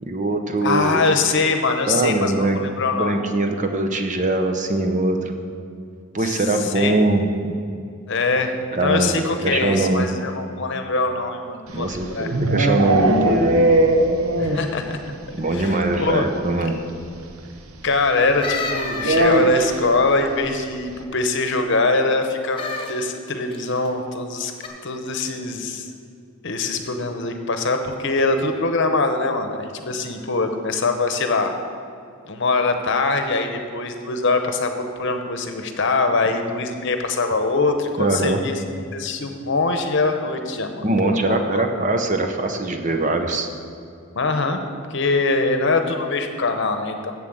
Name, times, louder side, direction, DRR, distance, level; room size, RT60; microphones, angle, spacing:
voice 1, 0.0-1.0 1.9-2.6 2.9-5.3 6.1-7.5 8.8-9.1 9.4-10.1 11.7-13.7 15.3-16.8 38.0-38.4 40.8-43.5, right 2 dB, 35° right, 5 dB, 0.7 m, -22 dB
voice 2, 0.6-3.2 6.2-7.0 8.1-12.3 14.4-15.0 15.3-16.3 17.8-24.5 24.8-25.9 26.4-31.6 32.3-38.6 38.9-41.6 44.1-44.6 44.9-47.1, left 3 dB, 55° left, 6 dB, 0.9 m, -23 dB
sound 1, 11.8-14.8 15.1-15.2 15.5-15.6 15.8-16.0 17.2-17.3 19.0-19.9, right 1 dB, 85° right, 0.8 m, -19 dB
sound 2, 18.4-19.6 22.5-22.9 23.5-23.9 24.6-24.7, left 4 dB, 25° left, 1.4 m, -29 dB
7.7 x 7.4 x 7.8 m, 2.4 s
head